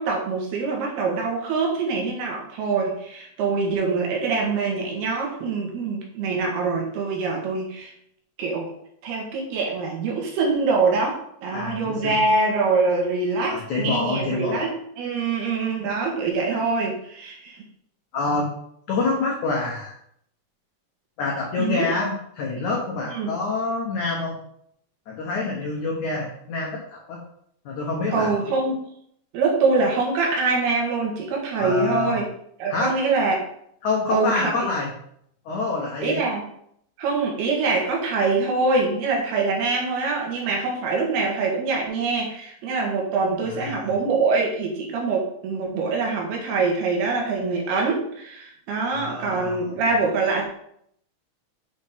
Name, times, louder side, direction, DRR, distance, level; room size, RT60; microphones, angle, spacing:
voice 1, 0.0-7.9 8.4-8.7 9.0-17.6 21.6-21.9 23.1-23.3 28.1-28.8 29.3-32.3 32.6-33.4 34.1-34.5 36.0-36.4 37.0-50.5, right 4 dB, 70° right, 0 dB, 3.2 m, -24 dB
voice 2, 11.5-12.2 13.5-14.7 18.1-18.5 18.9-19.9 21.2-24.4 25.1-27.2 27.6-28.3 31.6-32.2 32.7-32.9 33.8-34.9 35.4-36.2 43.4-43.8 48.8-49.6, left 3 dB, 85° left, -1 dB, 1.7 m, -27 dB
8.1 x 6.3 x 3.6 m, 0.70 s
omnidirectional pair, 5.1 m